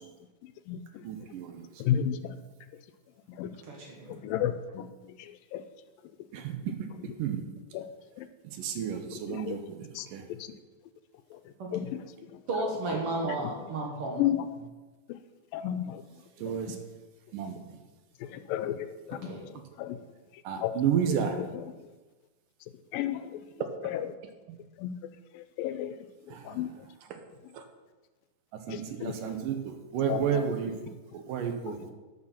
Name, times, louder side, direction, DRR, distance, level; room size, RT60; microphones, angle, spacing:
voice 1, 0.4-1.0 1.8-2.4 2.7-2.8 3.3-3.6 4.1-5.6 7.0-7.1 7.7-7.9 8.2-8.3 8.7-9.6 9.9-10.6 11.3-12.8 13.3-13.7 14.2-14.5 15.1-15.2 15.5-16.0 16.4-16.8 18.2-19.5 19.8-20.0 20.6-20.8 21.1-21.7 22.9-23.5 23.8-24.1 24.8-25.1 25.3-26.0 26.2-26.9 27.4-27.5 28.7-29.6 30.1-30.7 31.7-31.9, left 10 dB, 85° left, 11 dB, 2.4 m, -34 dB
voice 2, 1.0-1.7 6.3-7.5 8.4-10.3 16.4-16.8 17.3-17.8 20.4-21.4 26.3-26.6 27.1-27.2 27.5-27.6 28.7-30.7 31.1-31.9, right 8 dB, 75° right, 6 dB, 2.6 m, -32 dB
voice 3, 3.6-4.2 11.6-11.7 12.5-14.2 19.2-19.4, right 2 dB, 50° right, 0 dB, 2.1 m, -33 dB
12.5 x 6.5 x 5.8 m, 1.2 s
omnidirectional pair, 4.0 m